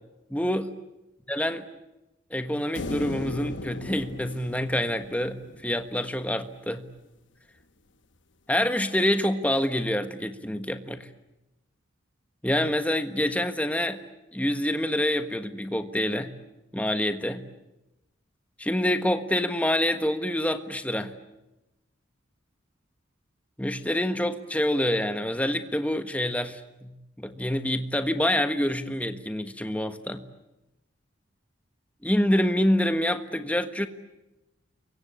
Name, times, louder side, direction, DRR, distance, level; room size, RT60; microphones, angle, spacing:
voice 1, 0.3-0.7 1.3-1.6 2.3-6.9 8.5-11.1 12.4-14.0 14.3-16.3 16.7-17.5 18.6-21.1 23.6-30.2 32.0-33.9, left 1 dB, 5° left, 8 dB, 1.4 m, -26 dB
sound 1, 2.8-6.1, left 2 dB, 60° left, 1.2 m, -37 dB
29.5 x 24.0 x 8.3 m, 0.95 s
head